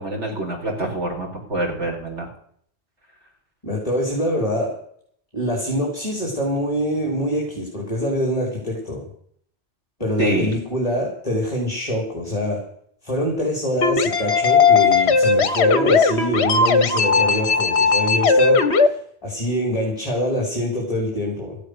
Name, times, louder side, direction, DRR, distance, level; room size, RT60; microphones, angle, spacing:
voice 1, 0.0-2.3 10.2-10.6, right 1 dB, 80° right, 0 dB, 5.0 m, -25 dB
voice 2, 3.6-4.7 5.3-9.0 10.0-12.6 13.0-18.6 19.2-21.6, equal, 30° left, -2 dB, 5.2 m, -24 dB
sound 1, 13.8-18.9, left 4 dB, 65° left, 1.5 m, -17 dB
15.5 x 12.5 x 6.8 m, 0.62 s
omnidirectional pair, 1.2 m